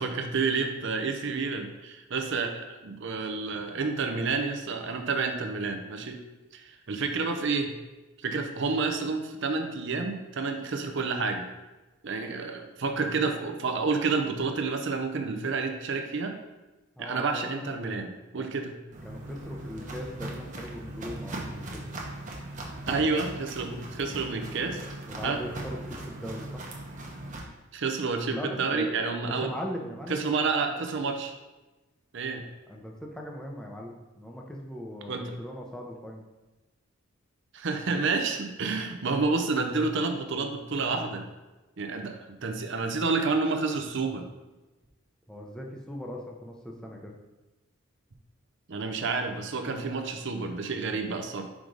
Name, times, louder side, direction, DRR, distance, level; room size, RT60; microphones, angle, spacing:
voice 1, 0.0-6.2 6.5-7.7 8.2-11.5 12.0-16.3 17.0-18.8 22.9-24.8 25.2-25.4 27.7-29.5 30.1-31.3 32.1-32.4 35.1-35.4 37.5-41.3 41.8-44.2 48.7-51.4, right 4 dB, 60° right, 5 dB, 0.6 m, -29 dB
voice 2, 17.0-17.9 18.3-18.5 19.0-21.8 23.5-23.7 25.1-26.6 28.3-28.9 29.2-30.2 30.6-31.0 32.7-36.2 45.3-47.1, equal, 5° left, 0 dB, 0.6 m, -39 dB
Walk footsteps, 18.9-27.4, right 1 dB, 35° right, 0.9 m, -39 dB
5.1 x 4.8 x 3.9 m, 1.1 s
head